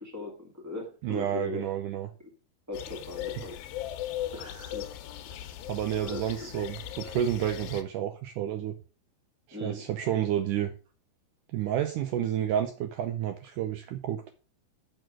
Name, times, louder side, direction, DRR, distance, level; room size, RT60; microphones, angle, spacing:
voice 1, 0.0-1.6 2.7-3.6 4.3-4.9 5.3-5.5 6.0-6.5 9.5-9.8, left 2 dB, 15° right, 1 dB, 0.6 m, -39 dB
voice 2, 1.0-2.1 5.7-8.8 9.5-10.7 11.5-14.2, right 10 dB, 85° right, 8 dB, 1.8 m, -30 dB
sound 1, 2.7-7.8, left 12 dB, 75° left, 2.5 m, -38 dB
6.7 x 6.4 x 6.1 m, 0.35 s
omnidirectional pair, 4.5 m